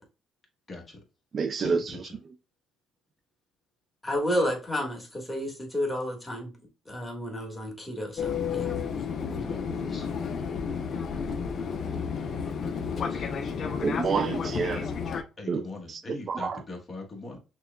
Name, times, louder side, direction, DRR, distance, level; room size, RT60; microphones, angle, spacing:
voice 1, 0.7-1.0 1.6-2.2 9.2-10.1 12.2-13.3 15.4-17.4, left 2 dB, 30° left, 1.3 m, -41 dB
voice 2, 1.3-1.9 13.8-14.9 15.5-15.6 15.9-16.0 16.3-16.6, right 5 dB, 40° right, 0.3 m, -28 dB
voice 3, 4.0-6.5 6.8-8.7, equal, 5° left, 1.5 m, -31 dB
Fixed-wing aircraft airplane, 8.2-15.2, left 6 dB, 50° left, 0.6 m, -31 dB
6.0 x 2.3 x 2.3 m
cardioid pair, 115°, 0 cm